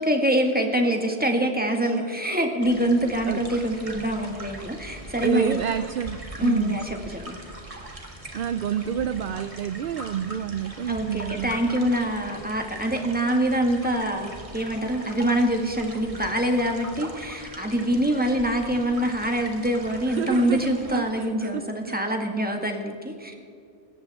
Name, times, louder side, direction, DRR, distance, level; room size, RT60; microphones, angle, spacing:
voice 1, 0.0-5.6 6.4-7.4 10.9-23.3, right 1 dB, 5° right, 2 dB, 1.8 m, -25 dB
sound 1, 2.6-21.0, right 1 dB, 25° right, 1.9 m, -41 dB
voice 2, 5.2-6.8 8.3-11.5 20.1-22.0, right 8 dB, 60° right, 12 dB, 0.6 m, -29 dB
25.5 x 13.5 x 3.6 m, 2.4 s
omnidirectional pair, 1.3 m